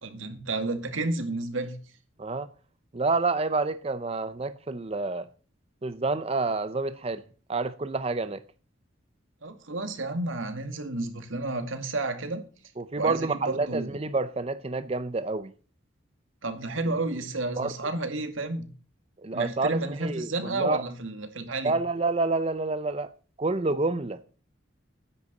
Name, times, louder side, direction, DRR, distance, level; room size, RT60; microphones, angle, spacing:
voice 1, 0.0-1.8 9.4-12.5 13.0-14.0 16.4-18.7 19.3-21.7, right 2 dB, 85° right, 2.1 m, -31 dB
voice 2, 2.2-2.5 2.9-5.3 5.8-7.2 7.5-8.4 12.8-15.5 17.6-17.7 19.2-20.8 21.6-23.1 23.4-24.2, right 3 dB, 30° right, 0.6 m, -28 dB
10.0 x 6.7 x 8.3 m
head